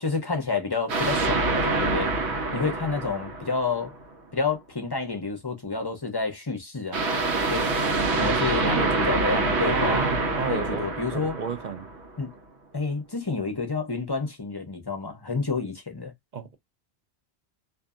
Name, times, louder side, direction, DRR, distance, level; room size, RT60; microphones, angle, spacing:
voice 1, 0.0-2.1 2.5-3.9 4.3-7.1 7.5-7.7 8.1-10.0 10.5-11.4 12.2-12.3 12.7-16.1, left 4 dB, 25° left, 0.6 m, -29 dB
sound 1, 0.9-4.0 6.9-12.1, right 3 dB, 85° right, 1.1 m, -26 dB
voice 2, 8.2-9.1 9.6-11.9 16.3-16.5, right 5 dB, 55° right, 0.6 m, -32 dB
2.6 x 2.6 x 2.4 m
omnidirectional pair, 1.1 m